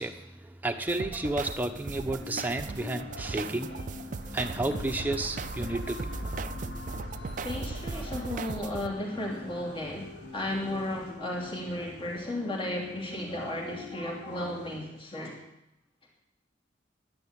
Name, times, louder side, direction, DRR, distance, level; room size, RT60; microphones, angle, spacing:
voice 1, 0.0-6.3 7.9-8.0, right 2 dB, 10° right, 4 dB, 1.0 m, -32 dB
sound 1, 0.9-8.9, right 4 dB, 45° right, 0.5 m, -38 dB
sound 2, 1.5-14.8, left 2 dB, 85° left, 7.2 m, -46 dB
sound 3, 3.9-12.0 12.5-12.6, left 1 dB, 65° left, 1.3 m, -43 dB
voice 2, 7.4-15.4, left 1 dB, 30° left, -1 dB, 3.0 m, -34 dB
10.5 x 10.5 x 9.8 m, 0.84 s
head